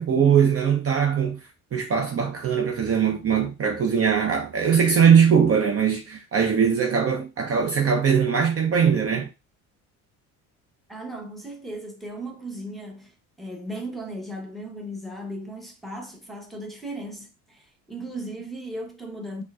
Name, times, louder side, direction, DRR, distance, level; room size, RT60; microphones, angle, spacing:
voice 1, 0.0-1.4 1.7-9.3, right 7 dB, 35° right, 0.7 m, -21 dB
voice 2, 10.9-19.4, right 1 dB, ahead, 1.0 m, -36 dB
4.3 x 2.1 x 2.4 m
hypercardioid pair, 70°, 38 cm